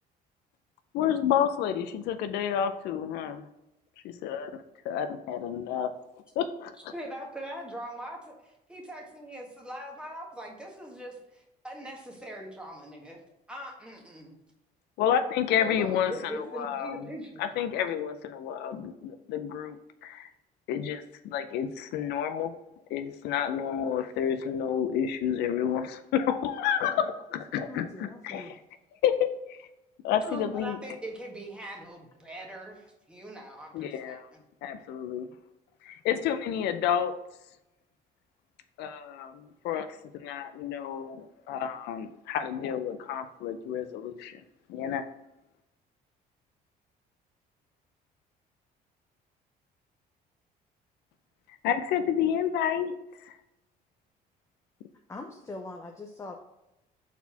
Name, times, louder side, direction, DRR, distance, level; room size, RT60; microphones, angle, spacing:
voice 1, 0.9-3.4 4.0-5.9 6.4-6.9 15.0-17.1 17.4-20.3 20.7-22.5 22.9-28.6 29.0-29.7 30.0-30.8 33.7-34.3 34.6-35.3 35.8-37.1 38.8-44.4 44.7-45.1 51.6-52.9 53.2-53.4, left 9 dB, 80° left, 10 dB, 0.5 m, -30 dB
voice 2, 6.9-13.2 13.5-14.4 15.6-17.5 30.2-34.4, right 1 dB, 5° right, -1 dB, 1.5 m, -41 dB
voice 3, 27.6-28.5 55.1-56.4, left 2 dB, 15° left, 2 dB, 0.6 m, -42 dB
4.3 x 4.1 x 5.6 m, 0.93 s
cardioid pair, 110°, 17 cm